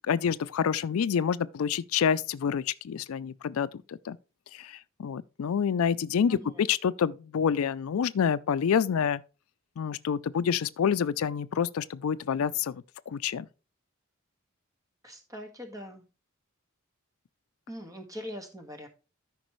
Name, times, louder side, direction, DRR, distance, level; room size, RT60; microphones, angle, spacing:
voice 1, 0.1-4.2 4.5-9.2 9.8-13.5, left 7 dB, 80° left, 0.4 m, -28 dB
voice 2, 6.3-6.6 15.0-16.0 17.7-18.9, equal, 15° right, 1.6 m, -42 dB
13.0 x 5.3 x 3.1 m
head